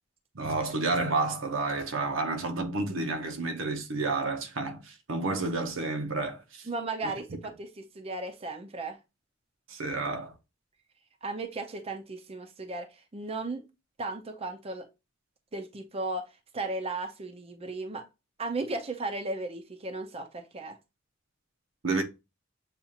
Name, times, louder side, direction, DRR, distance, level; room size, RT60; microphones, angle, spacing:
voice 1, 0.3-6.7 9.7-10.3 21.8-22.0, right 3 dB, 85° right, 0.9 m, -30 dB
voice 2, 6.7-9.0 11.2-13.6 14.0-14.9 15.5-18.1 18.4-20.8, right 2 dB, 30° right, 0.5 m, -35 dB
6.8 x 2.4 x 2.8 m
head